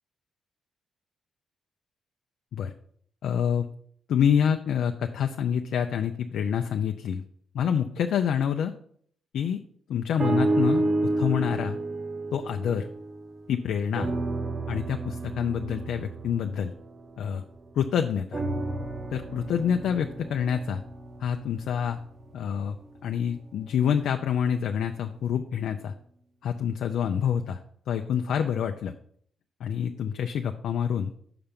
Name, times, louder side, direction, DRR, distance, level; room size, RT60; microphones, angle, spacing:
voice 1, 3.2-3.7 4.1-7.2 7.5-8.7 9.3-9.6 9.9-11.8 12.3-12.9 13.5-14.1 14.7-16.7 17.2-17.4 17.8-18.4 19.1-20.8 21.2-22.0 22.3-22.8 23.0-25.9 26.4-27.6 27.9-28.9 29.6-31.1, left 8 dB, 75° left, 5 dB, 0.5 m, -27 dB
sound 1, 10.2-13.5 13.9-17.7 18.3-22.5 23.2-23.3, right 2 dB, 40° right, 0.9 m, -31 dB
5.8 x 5.6 x 5.2 m, 0.63 s
cardioid pair, 85°, 0 cm